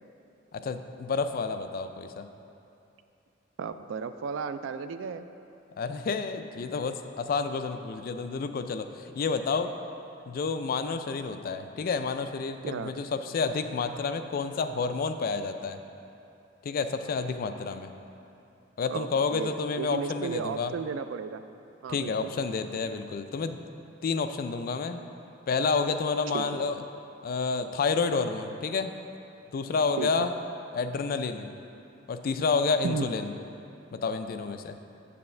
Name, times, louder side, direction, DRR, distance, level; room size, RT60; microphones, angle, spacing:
voice 1, 0.5-2.3 5.8-9.7 10.3-15.8 16.6-17.9 18.8-20.7 21.9-23.6 24.0-25.0 25.5-26.8 27.2-28.9 29.5-30.3 30.7-31.5 32.1-33.3 33.9-34.8, left 4 dB, 50° left, 8 dB, 0.3 m, -29 dB
voice 2, 3.6-5.3 12.6-13.0 18.9-21.4 21.8-22.3 26.3-26.6 30.0-30.3 32.8-33.1, right 5 dB, 80° right, 11 dB, 0.3 m, -34 dB
7.9 x 6.9 x 3.2 m, 2.7 s
head